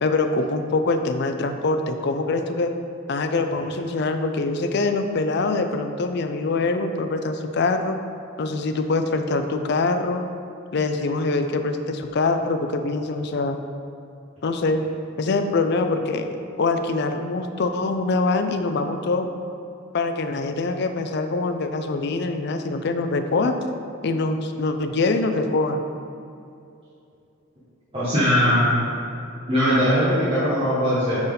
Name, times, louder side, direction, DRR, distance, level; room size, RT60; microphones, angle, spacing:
voice 1, 0.0-2.8 3.1-8.0 8.4-10.2 10.7-13.6 14.4-14.8 15.2-16.3 16.6-19.3 19.9-23.5 24.0-25.8, left 3 dB, 55° left, 7 dB, 0.5 m, -24 dB
voice 2, 27.9-28.8 29.5-31.2, equal, 25° right, -12 dB, 1.6 m, -20 dB
8.7 x 4.3 x 3.9 m, 2.6 s
head